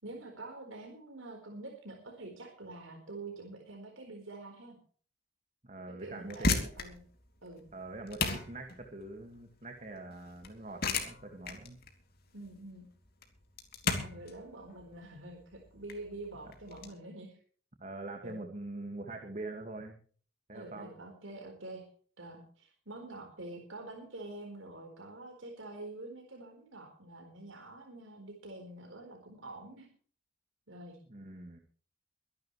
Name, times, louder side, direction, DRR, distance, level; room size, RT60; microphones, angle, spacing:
voice 1, 0.0-4.8 5.9-7.0 7.4-7.7 12.3-12.9 13.8-17.4 18.2-18.4 20.5-21.9 22.2-29.9 30.7-31.0, right 2 dB, 75° right, 2 dB, 4.3 m, -46 dB
voice 2, 5.6-6.7 7.7-11.8 16.4-16.5 17.8-20.0 20.5-20.9 31.1-31.6, right 2 dB, 35° right, 4 dB, 1.9 m, -44 dB
sound 1, 6.1-16.9, left 3 dB, 45° left, 2.9 m, -36 dB
23.5 x 11.5 x 3.2 m, 0.43 s
head